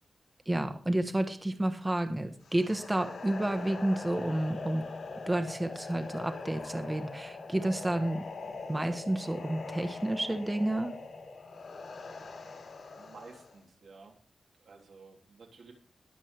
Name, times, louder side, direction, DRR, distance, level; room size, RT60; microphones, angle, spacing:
voice 1, 0.5-4.8 5.3-8.2 8.7-11.0, right 1 dB, 15° right, 7 dB, 1.1 m, -30 dB
sound 1, 2.4-13.6, left 3 dB, 70° left, 3.1 m, -42 dB
voice 2, 13.0-14.2 14.6-15.7, right 4 dB, 90° right, 0 dB, 3.2 m, -53 dB
21.0 x 7.4 x 3.2 m, 0.42 s
wide cardioid pair, 155°, 0 cm